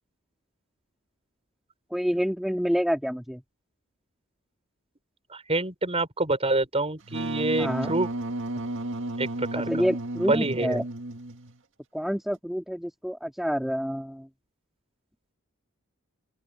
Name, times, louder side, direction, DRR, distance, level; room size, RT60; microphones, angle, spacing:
voice 1, 1.9-3.4 7.6-7.9 9.7-10.8 11.9-14.3, equal, ahead, 2.8 m, -28 dB
voice 2, 5.3-8.1 9.2-9.7 10.3-10.8, right 2 dB, 30° right, 5.8 m, -27 dB
Wind instrument woodwind instrument, 7.0-11.6, right 1 dB, 60° right, 2.0 m, -33 dB
open air
head